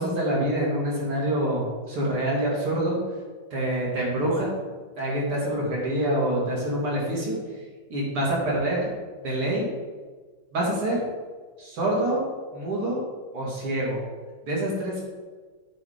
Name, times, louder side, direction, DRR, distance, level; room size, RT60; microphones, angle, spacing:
voice 1, 0.0-3.0 3.5-4.6 5.0-7.3 7.9-8.9 9.2-9.7 10.5-11.0 11.6-12.3 12.5-13.1 13.3-14.0 14.4-15.0, right 1 dB, 85° right, -3 dB, 3.1 m, -26 dB
9.1 x 4.8 x 5.0 m, 1.4 s
omnidirectional pair, 2.4 m